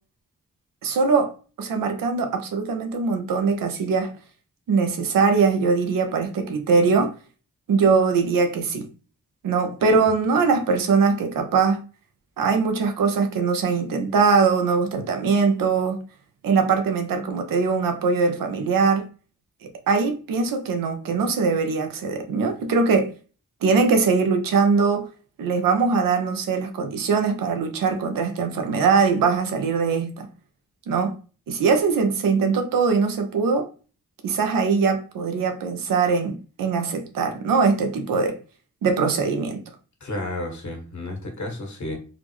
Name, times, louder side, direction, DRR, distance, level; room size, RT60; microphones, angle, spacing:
voice 1, 0.8-4.1 4.7-7.1 7.7-8.9 9.4-11.8 12.4-16.0 16.4-19.1 19.9-23.1 23.6-25.1 25.4-30.3 30.9-31.1 31.5-33.7 34.2-38.4 38.8-39.6, right 5 dB, 90° right, 0.6 m, -21 dB
voice 2, 40.0-42.0, left 1 dB, 60° left, 1.3 m, -32 dB
3.9 x 2.0 x 3.0 m
cardioid pair, 40°, 32 cm